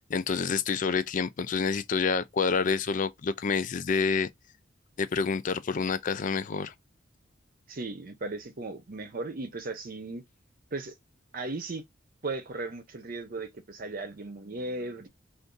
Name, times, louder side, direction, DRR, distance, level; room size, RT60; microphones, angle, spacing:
voice 1, 0.1-4.3 5.0-6.7, left 5 dB, 45° left, 0.4 m, -28 dB
voice 2, 7.7-10.2 10.7-10.9 11.3-11.8 12.2-15.1, right 2 dB, 50° right, 0.7 m, -36 dB
2.6 x 2.5 x 3.7 m
head